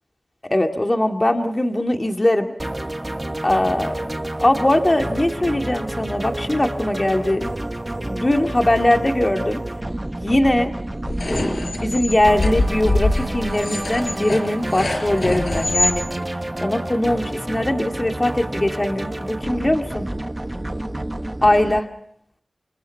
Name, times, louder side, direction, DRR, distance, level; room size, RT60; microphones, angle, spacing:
voice 1, 0.5-2.5 3.4-4.0 4.4-7.4 8.0-9.6 10.2-10.7 11.3-16.0 16.6-20.1 21.4-21.9, left 1 dB, 30° left, 4 dB, 2.1 m, -20 dB
sound 1, 2.6-21.8, right 1 dB, 25° right, 1.1 m, -29 dB
sound 2, 11.1-16.0, left 2 dB, 65° left, 4.6 m, -24 dB
29.0 x 26.5 x 4.6 m, 0.66 s
wide cardioid pair, 65°, 0 cm